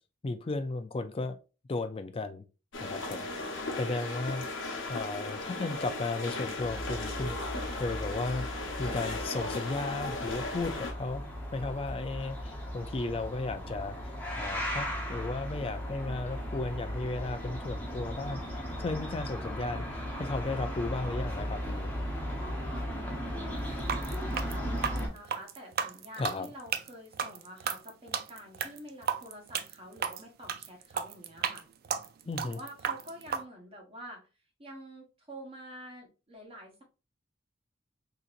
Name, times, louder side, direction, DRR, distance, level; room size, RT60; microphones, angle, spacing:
voice 1, 0.2-1.4 1.7-2.4 2.8-4.4 4.9-8.5 8.8-11.2 11.5-14.0 14.4-18.4 18.8-21.9 26.2-26.5 32.3-32.6, left 3 dB, 30° left, 0.4 m, -35 dB
sound 1, 2.7-10.9, left 2 dB, 70° left, 0.9 m, -37 dB
voice 2, 2.9-3.5 22.4-22.8 23.3-31.6 32.4-34.2 34.6-36.8, equal, 30° right, 1.1 m, -48 dB
sound 2, 6.6-25.1, equal, 10° left, 0.8 m, -37 dB
sound 3, 23.8-33.4, right 7 dB, 50° right, 0.3 m, -34 dB
3.8 x 2.8 x 2.4 m
head